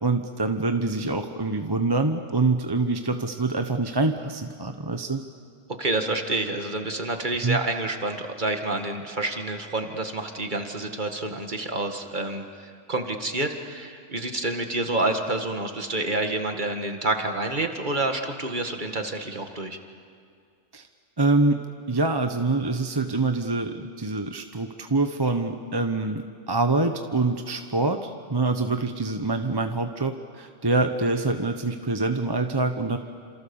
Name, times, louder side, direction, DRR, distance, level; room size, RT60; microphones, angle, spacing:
voice 1, 0.0-5.2 7.4-7.6 20.7-20.8 21.2-21.6 21.9-33.0, right 3 dB, 20° right, 6 dB, 0.9 m, -25 dB
voice 2, 5.8-19.8, right 2 dB, 35° right, 5 dB, 2.1 m, -28 dB
28.5 x 27.5 x 7.1 m, 2.2 s
omnidirectional pair, 1.4 m